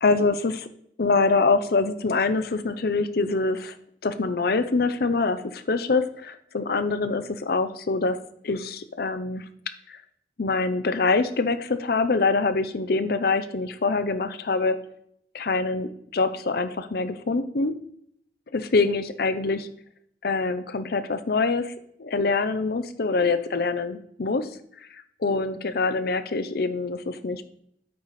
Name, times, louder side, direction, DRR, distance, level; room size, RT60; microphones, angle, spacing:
voice 1, 0.0-0.7 1.0-3.7 4.0-8.2 8.4-9.4 9.9-10.0 10.4-14.8 15.3-17.8 18.5-19.7 20.2-21.7 22.0-24.5 25.2-27.4, left 3 dB, 60° left, 11 dB, 0.6 m, -24 dB
9.1 x 4.1 x 4.8 m, 0.68 s
head